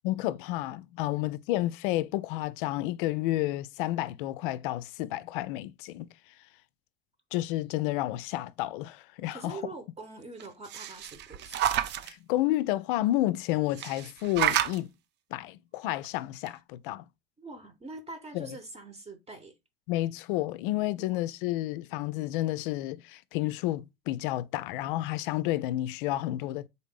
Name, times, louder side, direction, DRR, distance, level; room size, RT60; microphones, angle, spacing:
voice 1, 0.0-6.1 7.3-9.6 12.0-14.9 15.3-17.0 18.3-18.6 19.9-26.7, left 16 dB, 60° left, 0.4 m, -31 dB
voice 2, 9.3-11.7 17.4-19.5 21.0-21.2, right 3 dB, 20° right, 1.0 m, -44 dB
sound 1, 10.4-12.1 13.7-14.8 16.0-16.1 16.5-16.6, right 11 dB, 40° right, 0.5 m, -30 dB
4.0 x 3.6 x 3.7 m
figure-of-eight pair, 65°, 29 cm